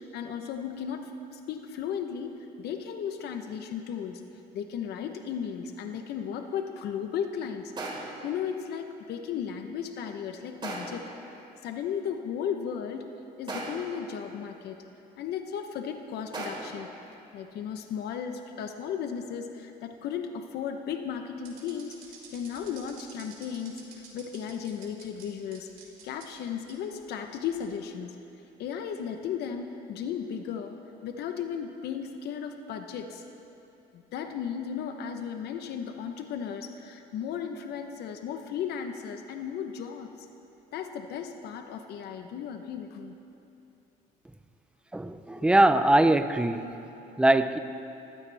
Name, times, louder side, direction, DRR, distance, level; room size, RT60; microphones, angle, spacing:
voice 1, 0.0-4.2 4.5-14.8 15.2-16.9 17.3-22.0 22.3-25.7 26.0-28.2 28.6-30.8 31.0-33.2 33.9-40.3 40.7-43.1 45.3-45.5, left 7 dB, 75° left, 6 dB, 0.9 m, -35 dB
sound 1, 7.8-8.3 10.6-11.1 13.5-14.0 16.3-16.8, right 2 dB, 30° right, 3.8 m, -37 dB
sound 2, 21.4-25.2 25.5-26.2 26.7-26.8 27.4-27.7, right 7 dB, 60° right, 4.6 m, -49 dB
voice 2, 44.9-46.6 47.2-47.6, right 1 dB, 5° right, 10 dB, 0.6 m, -21 dB
23.5 x 15.5 x 3.4 m, 2.9 s
cardioid pair, 110°, 17 cm